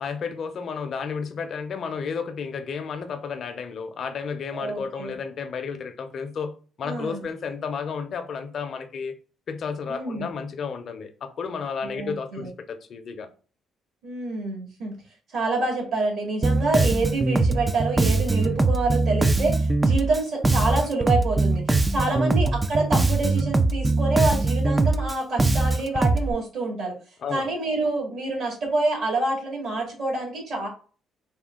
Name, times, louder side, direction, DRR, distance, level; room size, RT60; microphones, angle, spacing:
voice 1, 0.0-9.1 9.5-13.3 22.1-22.2 27.2-27.5, left 5 dB, 50° left, 0.6 m, -32 dB
voice 2, 4.5-5.1 6.8-7.3 9.9-10.3 11.8-12.5 14.0-14.9 15.3-27.0 27.3-30.7, right 2 dB, 60° right, 2.1 m, -27 dB
Bass guitar, 16.4-26.3, right 3 dB, 15° right, 0.3 m, -22 dB
4.3 x 2.3 x 3.6 m
cardioid pair, 125°, 0 cm